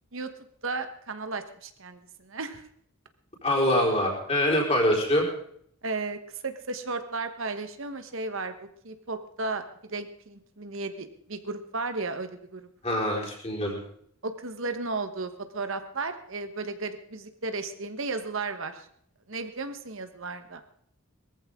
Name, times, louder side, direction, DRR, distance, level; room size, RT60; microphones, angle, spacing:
voice 1, 0.6-2.7 5.8-9.6 9.9-12.6 14.2-18.9 19.3-20.6, right 3 dB, 60° right, 8 dB, 1.2 m, -34 dB
voice 2, 3.4-5.3 12.8-13.8, left 1 dB, 30° left, -1 dB, 4.5 m, -24 dB
19.5 x 14.5 x 3.7 m, 0.65 s
head